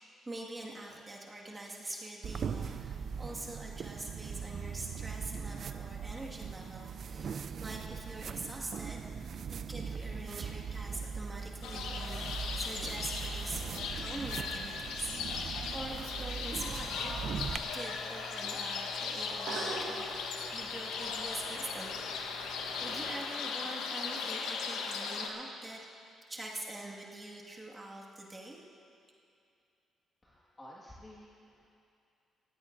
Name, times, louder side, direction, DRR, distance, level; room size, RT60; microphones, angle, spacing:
voice 1, 0.3-9.0 9.7-17.2 17.7-20.1 20.5-22.2 22.8-28.6, right 2 dB, 20° right, -3 dB, 1.9 m, -44 dB
sound 1, 2.2-17.6, right 6 dB, 55° right, 0.5 m, -40 dB
sound 2, 11.6-25.3, left 5 dB, 90° left, 1.0 m, -38 dB
sound 3, 16.4-23.2, right 2 dB, 70° right, 3.4 m, -46 dB
voice 2, 30.2-31.7, left 1 dB, 20° left, -5 dB, 1.8 m, -52 dB
19.5 x 16.0 x 2.6 m, 2.5 s
cardioid pair, 90°, 0 cm